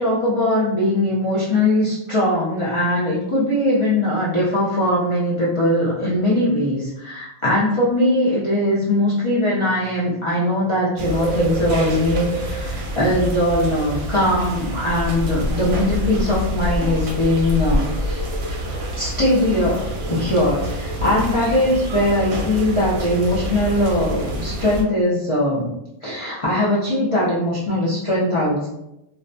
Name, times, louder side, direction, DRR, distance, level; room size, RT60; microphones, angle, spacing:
voice 1, 0.0-18.6 19.0-25.7 26.0-28.7, left 1 dB, 50° left, -9 dB, 0.3 m, -20 dB
sound 1, 11.0-24.8, equal, 85° right, 1.0 m, -26 dB
2.5 x 2.1 x 2.5 m, 0.87 s
omnidirectional pair, 1.4 m